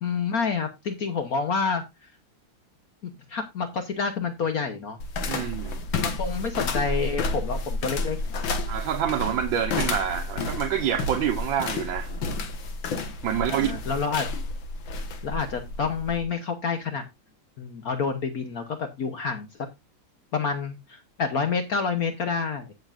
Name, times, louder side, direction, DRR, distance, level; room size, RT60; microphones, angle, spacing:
voice 1, 0.0-2.1 3.3-5.0 6.0-8.2 13.3-14.3 15.0-17.0 17.6-19.5 20.3-22.7, left 5 dB, 55° left, 1.3 m, -28 dB
sound 1, 5.0-16.3, left 3 dB, 80° left, 2.1 m, -31 dB
voice 2, 5.3-5.8 8.7-12.1 13.2-13.7, right 9 dB, 80° right, 1.6 m, -27 dB
16.0 x 6.6 x 2.4 m
omnidirectional pair, 2.1 m